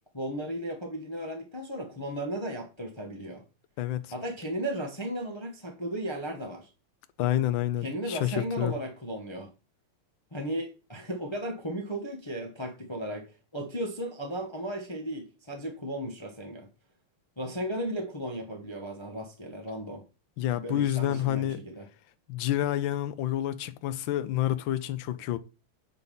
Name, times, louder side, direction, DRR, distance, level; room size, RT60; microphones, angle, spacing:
voice 1, 0.1-3.4 4.1-6.7 7.8-9.5 10.3-16.7 17.4-20.0 20.5-21.9, right 1 dB, 20° left, 0.9 m, -35 dB
voice 2, 7.2-8.7 20.4-21.6 22.3-25.4, left 12 dB, 75° left, 1.3 m, -28 dB
8.1 x 4.1 x 5.3 m
omnidirectional pair, 2.3 m